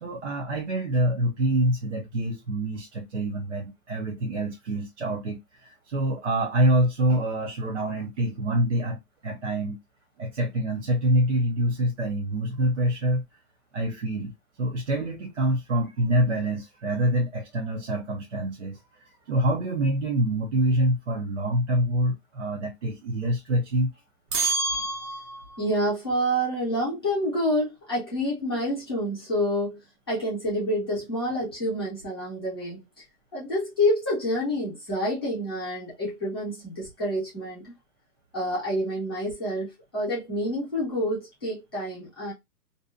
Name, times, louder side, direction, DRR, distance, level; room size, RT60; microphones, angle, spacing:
voice 1, 0.0-9.8 10.2-13.2 13.7-14.3 14.6-23.9 24.7-24.8, right 1 dB, 50° right, 0.5 m, -26 dB
sound 1, 24.3-25.7, right 3 dB, 75° right, 0.9 m, -28 dB
voice 2, 25.6-29.8 30.1-33.0 33.3-37.7 38.3-42.3, equal, 15° left, 0.7 m, -28 dB
2.6 x 2.2 x 2.4 m
hypercardioid pair, 180°, 46 cm